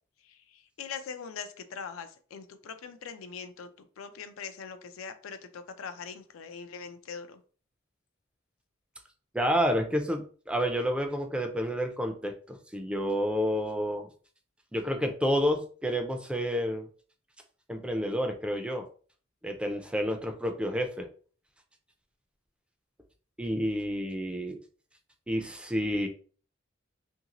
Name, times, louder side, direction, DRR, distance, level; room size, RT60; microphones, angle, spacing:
voice 1, 0.3-7.4, left 6 dB, 85° left, 9 dB, 0.4 m, -42 dB
voice 2, 9.3-14.1 14.7-16.9 17.7-18.9 19.4-21.1 23.4-24.6 25.3-26.1, equal, 5° right, 4 dB, 0.3 m, -29 dB
2.7 x 2.6 x 2.9 m, 0.41 s
head